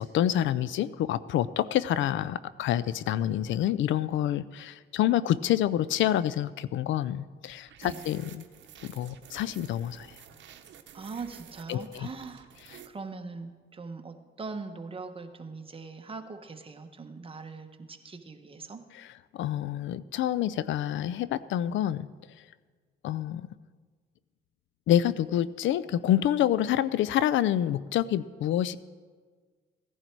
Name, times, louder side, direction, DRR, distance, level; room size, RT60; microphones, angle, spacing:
voice 1, 0.0-8.4 8.8-10.2 11.7-12.1 12.7-12.8 18.9-19.1 19.3-22.1 23.0-23.5 24.9-28.8, left 11 dB, 75° left, 17 dB, 0.4 m, -27 dB
sound 1, 7.5-12.9, right 9 dB, 65° right, 1.0 m, -51 dB
voice 2, 10.9-12.5 12.8-18.8, right 4 dB, 25° right, 6 dB, 1.2 m, -41 dB
16.5 x 10.5 x 4.6 m, 1.5 s
cardioid pair, 90°, 20 cm